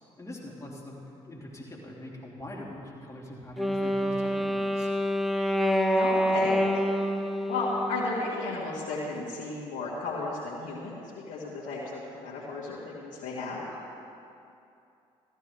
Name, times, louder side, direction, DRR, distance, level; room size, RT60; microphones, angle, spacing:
voice 1, 0.2-4.9, left 1 dB, 20° left, -4 dB, 3.4 m, -43 dB
Wind instrument woodwind instrument, 3.6-8.6, equal, ahead, 1.0 m, -27 dB
voice 2, 5.9-6.6 7.5-11.0 11.3-13.6, left 3 dB, 70° left, -8 dB, 2.2 m, -33 dB
15.0 x 13.0 x 3.5 m, 2.6 s
hypercardioid pair, 55°, 14 cm